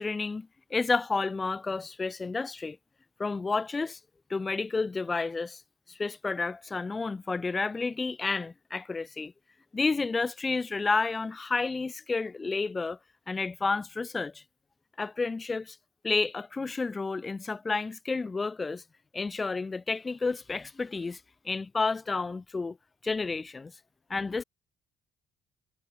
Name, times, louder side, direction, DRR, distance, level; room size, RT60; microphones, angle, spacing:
voice 1, 0.0-2.8 3.2-4.0 4.3-5.6 5.9-9.3 9.7-13.0 13.3-14.4 15.0-15.8 16.0-18.8 19.1-21.2 21.4-22.8 23.0-23.7 24.1-24.4, left 4 dB, 20° left, 2.2 m, -30 dB
cardioid pair, 145°, 0 cm